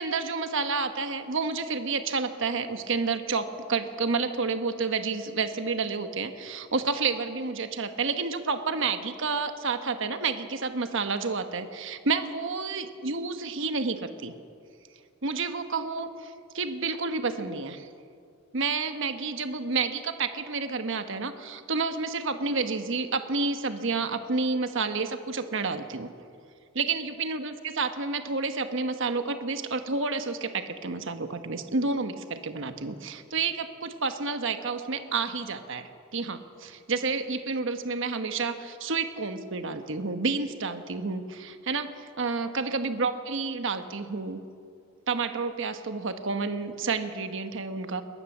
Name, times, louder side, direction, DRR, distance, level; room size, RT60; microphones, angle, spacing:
voice 1, 0.0-14.3 15.2-17.9 18.5-26.1 26.7-44.4 45.1-48.0, right 4 dB, 65° right, 8 dB, 1.2 m, -30 dB
21.5 x 18.0 x 7.3 m, 2.3 s
head